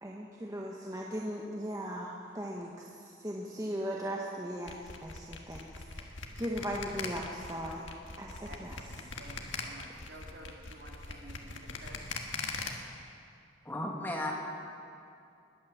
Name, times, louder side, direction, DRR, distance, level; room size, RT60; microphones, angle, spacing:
voice 1, 0.0-5.7 5.9-6.0 6.4-7.9 8.2-8.8, equal, 20° right, -2 dB, 1.1 m, -38 dB
sound 1, 4.7-12.7, left 4 dB, 85° left, 1.5 m, -40 dB
voice 2, 8.5-12.1, right 1 dB, 65° right, 0 dB, 2.4 m, -51 dB
voice 3, 13.6-14.3, left 1 dB, 10° left, -1 dB, 1.6 m, -34 dB
21.0 x 8.8 x 7.2 m, 2.5 s
head